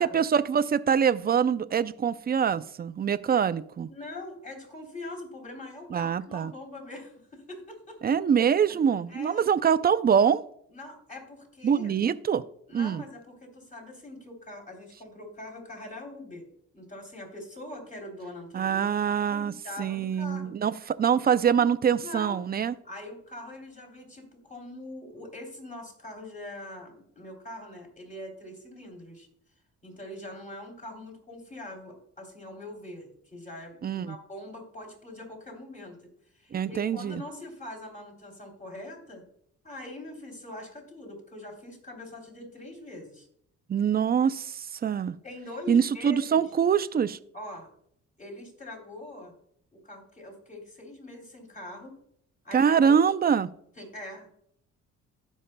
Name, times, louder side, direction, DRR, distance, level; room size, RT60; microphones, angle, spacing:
voice 1, 0.0-3.9 5.9-6.5 8.0-10.4 11.6-12.4 12.7-13.0 18.5-19.5 19.8-22.7 33.8-34.1 36.5-37.2 43.7-45.1 45.7-47.2 52.5-53.5, right 7 dB, 30° right, 14 dB, 0.4 m, -24 dB
voice 2, 3.9-8.5 9.1-9.4 10.7-11.9 12.7-16.5 16.7-18.8 19.3-20.5 21.0-21.2 22.0-22.4 22.8-29.3 29.8-36.0 36.3-39.2 39.6-43.3 45.2-46.4 47.3-47.7 48.2-49.3 49.8-51.9 52.4-53.0 53.8-54.3, left 1 dB, 25° left, 1 dB, 3.1 m, -43 dB
16.0 x 5.4 x 2.2 m, 0.70 s
cardioid pair, 90°, 30 cm